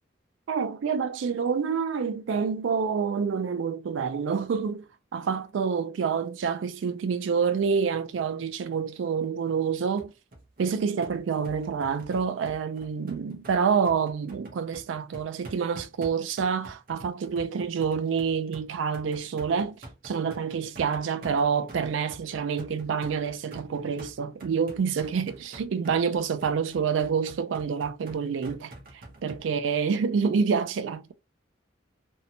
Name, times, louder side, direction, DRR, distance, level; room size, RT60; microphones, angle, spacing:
voice 1, 0.5-4.9 5.1-10.1 10.6-19.8 20.0-28.7 29.2-31.1, right 6 dB, 85° right, 0.4 m, -27 dB
sound 1, 10.0-29.4, right 1 dB, 50° right, 0.7 m, -47 dB
2.7 x 2.1 x 2.7 m
head